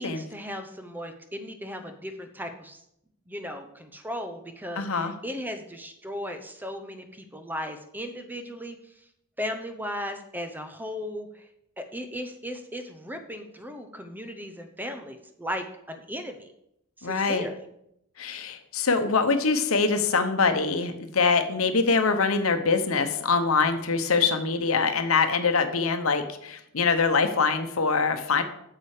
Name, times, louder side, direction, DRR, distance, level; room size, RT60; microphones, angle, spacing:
voice 1, 0.0-2.8 3.3-8.9 9.4-11.5 11.8-16.5 17.0-17.7, equal, 10° right, 7 dB, 0.7 m, -36 dB
voice 2, 4.8-5.1 17.0-17.5 18.2-28.4, left 4 dB, 80° left, 8 dB, 0.9 m, -24 dB
8.7 x 6.8 x 4.9 m, 0.78 s
head